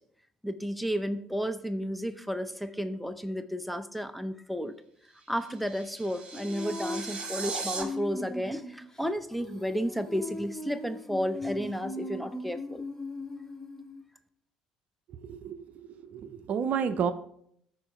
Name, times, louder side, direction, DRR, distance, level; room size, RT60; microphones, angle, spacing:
voice 1, 0.4-4.8 5.3-12.9, equal, ahead, 11 dB, 0.6 m, -32 dB
sound 1, 5.2-7.8, right 4 dB, 35° right, 2.4 m, -38 dB
Female singing, 6.3-14.0, left 2 dB, 15° left, 1.5 m, -39 dB
voice 2, 15.2-15.6 16.0-17.1, right 7 dB, 55° right, 12 dB, 0.6 m, -30 dB
13.0 x 4.5 x 3.2 m, 0.69 s
hypercardioid pair, 65°, 3 cm